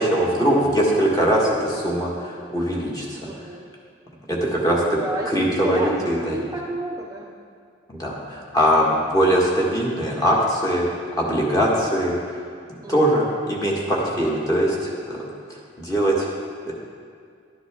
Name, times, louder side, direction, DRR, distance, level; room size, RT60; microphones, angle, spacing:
voice 1, 0.0-3.2 4.3-5.0 5.2-6.4 7.9-10.8 11.2-12.4 12.7-15.2 15.5-16.3 16.7-16.8, equal, 20° left, -4 dB, 1.6 m, -21 dB
voice 2, 3.2-3.6 5.0-5.3 5.6-7.3 7.9-8.3 12.8-13.2, right 1 dB, 15° right, -2 dB, 0.6 m, -32 dB
12.0 x 9.9 x 3.7 m, 2.2 s
head